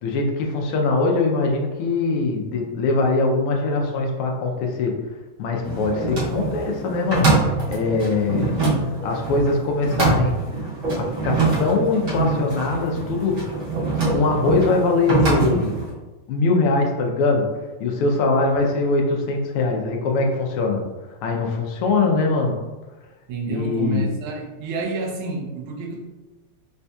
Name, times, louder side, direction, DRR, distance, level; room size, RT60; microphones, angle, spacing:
voice 1, 0.0-5.0 5.4-8.6 9.0-10.4 11.0-13.6 14.1-15.7 16.3-17.5 17.8-20.8 21.2-22.5 23.5-24.1, left 3 dB, 90° left, 1 dB, 1.5 m, -22 dB
sound 1, 5.6-15.9, right 3 dB, 50° right, 1.4 m, -24 dB
voice 2, 8.4-9.0 21.9-22.1 23.3-26.0, right 3 dB, 80° right, 1 dB, 1.5 m, -29 dB
4.1 x 2.6 x 2.2 m, 1.2 s
omnidirectional pair, 2.4 m